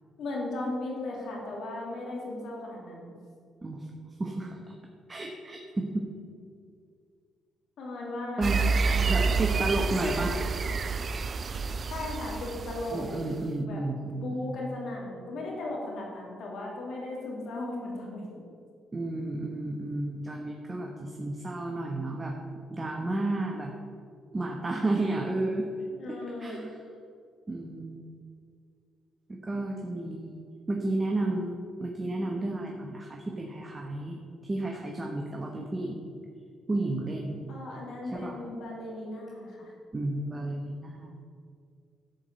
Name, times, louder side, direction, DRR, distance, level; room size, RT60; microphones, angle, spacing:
voice 1, 0.2-3.1 7.8-10.2 11.9-13.1 13.6-13.8 14.2-18.3 25.9-26.7 37.5-39.7, left 2 dB, 70° left, -2 dB, 2.9 m, -37 dB
voice 2, 5.1-6.1 8.4-8.6 9.1-10.4 10.9-11.1 12.9-14.5 18.9-22.3 22.7-23.7 24.3-25.7 26.4-26.7 27.5-28.1 29.3-30.4 30.7-36.0 36.7-37.4 38.1-38.4 39.9-41.2, right 2 dB, 25° right, 0 dB, 1.2 m, -32 dB
sound 1, 8.4-13.4, right 4 dB, 45° right, 0.4 m, -29 dB
12.0 x 4.9 x 6.9 m, 2.2 s
cardioid pair, 90°, 0 cm